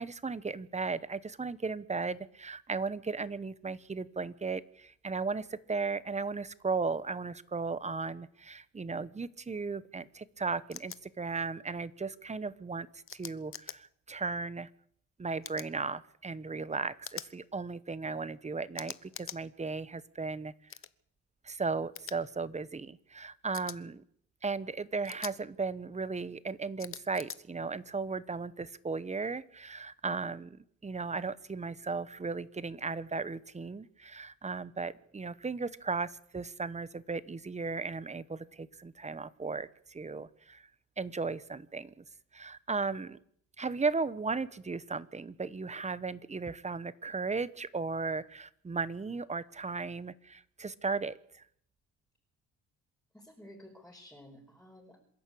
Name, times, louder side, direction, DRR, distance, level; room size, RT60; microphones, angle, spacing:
voice 1, 0.0-12.9 13.1-14.7 15.2-20.5 21.4-24.0 24.4-40.7 41.0-42.0 42.3-43.2 43.6-51.4, right 4 dB, 25° right, 17 dB, 1.2 m, -36 dB
sound 1, 10.7-11.0 13.1-13.8 15.4-15.7 17.0-17.3 18.8-19.4 20.7-20.9 22.0-22.2 23.5-23.8 25.0-25.3 26.8-27.4, left 8 dB, 45° left, 1.1 m, -43 dB
voice 2, 53.1-55.0, left 1 dB, 5° left, -1 dB, 5.2 m, -53 dB
27.0 x 11.5 x 8.6 m, 0.67 s
cardioid pair, 90°, 30 cm